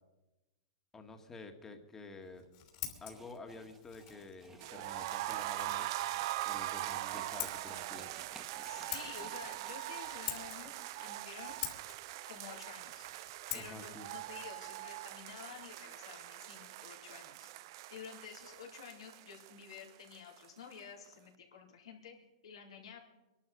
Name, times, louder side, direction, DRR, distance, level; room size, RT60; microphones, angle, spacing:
voice 1, 0.9-2.5 3.0-5.9 6.5-8.1 13.6-14.1, left 3 dB, 15° left, 6 dB, 1.7 m, -50 dB
Scissors, 2.2-15.8, left 12 dB, 45° left, 3.1 m, -48 dB
sound 1, 2.9-11.5, right 4 dB, 15° right, 1.4 m, -59 dB
sound 2, 4.6-20.5 20.7-20.8 21.1-21.2, right 16 dB, 55° right, 0.5 m, -42 dB
voice 2, 8.6-11.6 12.3-13.1 13.5-17.5 17.9-22.2 22.4-23.0, left 7 dB, 85° left, -1 dB, 4.0 m, -51 dB
22.5 x 11.5 x 5.3 m, 1.1 s
hypercardioid pair, 135°, 3 cm